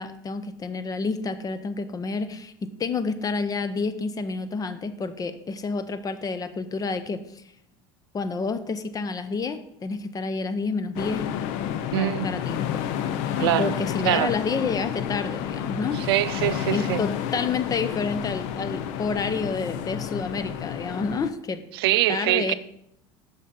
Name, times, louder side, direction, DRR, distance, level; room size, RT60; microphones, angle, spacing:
voice 1, 0.0-7.4 8.1-11.2 11.9-12.8 13.6-16.0 16.7-21.6 22.1-22.5, left 4 dB, 30° left, 0.8 m, -29 dB
sound 1, 11.0-21.3, left 10 dB, 70° left, 0.6 m, -30 dB
voice 2, 11.9-12.3 13.4-13.8 14.0-14.3 15.9-17.0 21.7-22.5, right 16 dB, 85° right, 0.4 m, -23 dB
7.2 x 5.8 x 5.2 m
supercardioid pair, 95°, 12 cm